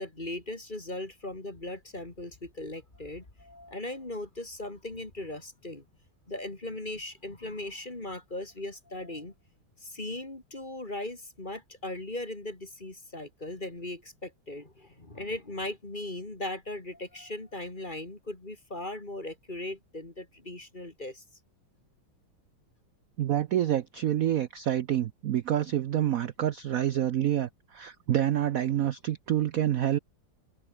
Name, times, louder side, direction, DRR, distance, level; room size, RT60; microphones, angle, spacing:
voice 1, 0.0-5.8 6.3-9.3 9.8-21.2, left 1 dB, 20° left, 3.0 m, -38 dB
voice 2, 23.2-30.0, right 11 dB, 90° right, 0.7 m, -27 dB
omnidirectional pair, 2.3 m